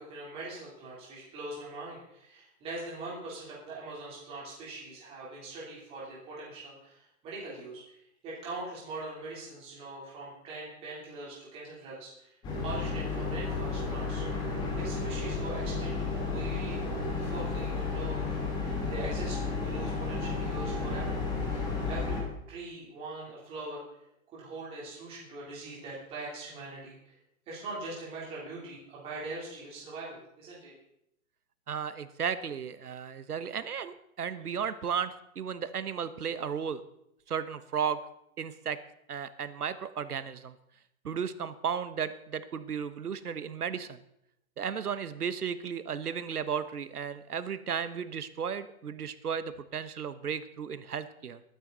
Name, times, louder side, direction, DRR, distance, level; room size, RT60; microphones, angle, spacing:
voice 1, 0.0-8.0 8.2-12.3 12.6-14.2 14.8-16.8 17.2-18.2 18.6-21.2 21.5-22.2 22.5-23.8 24.3-27.1 27.5-30.7, right 2 dB, 15° right, -6 dB, 3.5 m, -42 dB
sound 1, 12.4-22.2, left 4 dB, 10° left, 1.8 m, -32 dB
voice 2, 31.7-36.8 37.3-38.0 38.4-38.8 39.1-40.5 41.0-44.0 44.6-51.4, right 7 dB, 90° right, 12 dB, 1.4 m, -34 dB
22.0 x 9.4 x 4.1 m, 0.78 s
hypercardioid pair, 165°, 44 cm